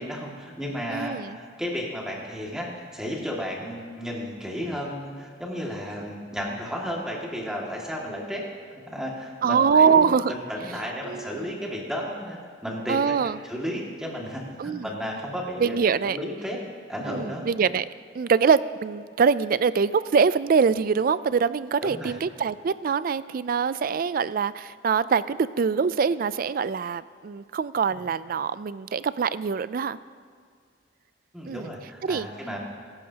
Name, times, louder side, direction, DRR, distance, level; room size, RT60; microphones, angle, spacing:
voice 1, 0.0-8.4 8.7-13.2 13.4-15.8 16.0-16.6 16.9-17.4 21.8-22.2 27.9-28.0 31.3-32.6, equal, 5° right, -3 dB, 2.1 m, -33 dB
voice 2, 0.9-1.4 9.4-10.3 11.0-11.3 12.9-13.4 14.6-14.9 15.6-16.2 17.1-17.9 18.1-30.0 31.5-31.7 32.0-32.3, right 6 dB, 50° right, 16 dB, 0.3 m, -23 dB
23.0 x 12.0 x 2.9 m, 2.1 s
head